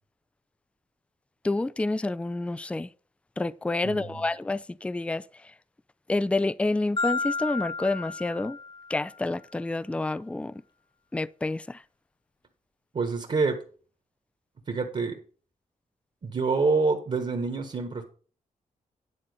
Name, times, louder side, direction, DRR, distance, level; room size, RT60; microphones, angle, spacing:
voice 1, 1.4-2.9 3.4-5.5 6.1-8.6 8.9-10.6 11.1-11.8, left 2 dB, 10° left, 0.4 m, -29 dB
voice 2, 3.8-4.3 12.9-13.6 14.7-15.2 16.2-18.0, right 4 dB, 45° right, 1.7 m, -27 dB
Marimba xylophone, 7.0-9.2, left 4 dB, 30° left, 0.8 m, -32 dB
10.0 x 4.1 x 6.7 m
cardioid pair, 65°, 14 cm